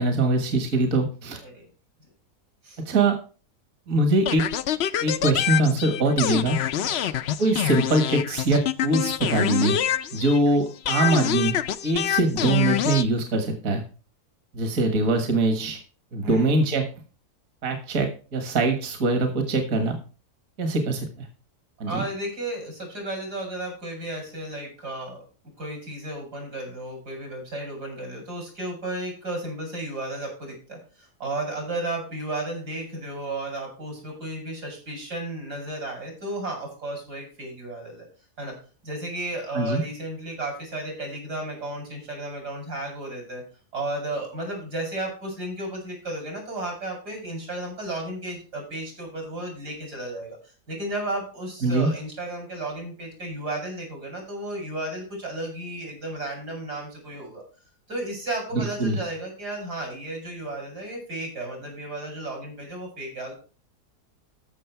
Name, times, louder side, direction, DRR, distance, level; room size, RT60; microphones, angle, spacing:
voice 1, 0.0-1.4 2.9-3.2 3.9-4.5 5.0-6.6 7.4-9.8 10.1-11.6 11.8-13.8 14.5-15.8 16.1-16.9 17.6-20.0 20.6-21.3 21.8-22.0 39.5-39.8 51.6-51.9 58.5-59.0, right 2 dB, 60° right, 6 dB, 1.9 m, -23 dB
sound 1, 4.3-10.5 10.9-13.1, left 11 dB, 65° left, 0.6 m, -26 dB
voice 2, 6.8-7.2 14.7-15.3 16.2-16.5 21.8-25.2 25.6-38.1 38.4-38.5 38.8-43.4 43.7-57.4 57.9-63.3, right 1 dB, 80° right, 1 dB, 6.2 m, -33 dB
14.0 x 6.3 x 4.5 m, 0.37 s
omnidirectional pair, 1.7 m